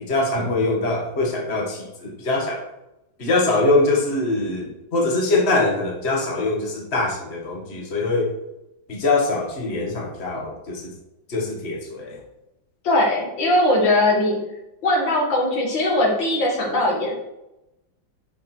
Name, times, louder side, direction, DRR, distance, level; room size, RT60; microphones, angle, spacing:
voice 1, 0.1-2.6 3.2-8.3 8.9-10.9 11.3-12.2, left 2 dB, 35° left, -2 dB, 2.1 m, -23 dB
voice 2, 12.8-14.4 14.8-17.2, left 1 dB, 70° left, -1 dB, 2.6 m, -20 dB
12.0 x 5.1 x 4.6 m, 0.92 s
omnidirectional pair, 2.1 m